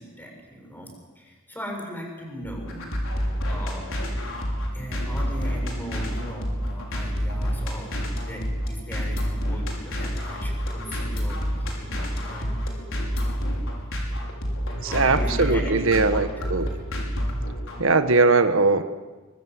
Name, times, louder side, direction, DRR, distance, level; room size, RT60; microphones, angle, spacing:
voice 1, 0.0-2.9 3.5-3.9 4.7-12.6 14.8-16.7, equal, 10° left, 1 dB, 7.2 m, -38 dB
sound 1, 2.4-17.8, equal, 65° left, 5.9 m, -28 dB
voice 2, 14.8-16.7 17.8-18.8, right 3 dB, 65° right, 9 dB, 1.6 m, -20 dB
24.5 x 23.5 x 8.0 m, 1.2 s
head